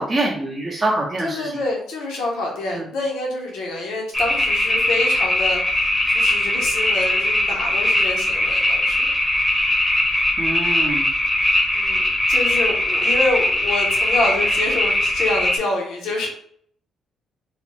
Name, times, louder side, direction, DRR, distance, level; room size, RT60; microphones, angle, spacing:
voice 1, 0.0-1.5 2.7-2.8 10.4-11.1, right 2 dB, 30° right, -1 dB, 0.6 m, -24 dB
voice 2, 1.2-9.1 11.7-16.3, left 2 dB, 85° left, -1 dB, 0.8 m, -27 dB
sound 1, 4.1-15.6, left 1 dB, 15° left, 0.7 m, -20 dB
3.2 x 2.1 x 3.0 m, 0.62 s
cardioid pair, 90°, 0 cm